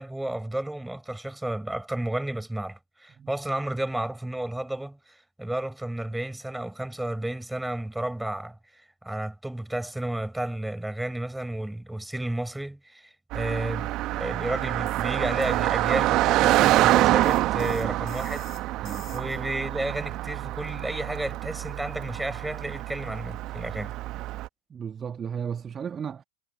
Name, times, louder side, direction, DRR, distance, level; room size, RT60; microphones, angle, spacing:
voice 1, 0.0-8.6 9.0-18.5 19.1-23.9, right 1 dB, 5° right, 6.9 m, -32 dB
Car passing by, 13.3-24.5, right 16 dB, 35° right, 2.0 m, -26 dB
sound 1, 14.9-15.1 15.4-19.4, left 10 dB, 25° left, 5.9 m, -51 dB
voice 2, 24.7-26.2, right 7 dB, 20° right, 2.5 m, -34 dB
figure-of-eight pair, 90°, 0 cm